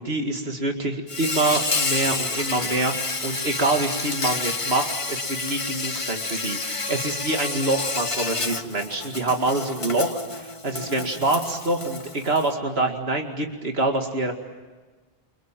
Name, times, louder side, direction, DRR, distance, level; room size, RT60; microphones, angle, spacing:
voice 1, 0.0-14.3, right 2 dB, 85° right, 3 dB, 2.4 m, -26 dB
Insect, 1.1-12.5, left 3 dB, 30° left, 1.2 m, -29 dB
Zipper (clothing), 1.4-8.6, equal, 20° right, 4.4 m, -41 dB
29.5 x 25.5 x 7.5 m, 1.3 s
omnidirectional pair, 1.0 m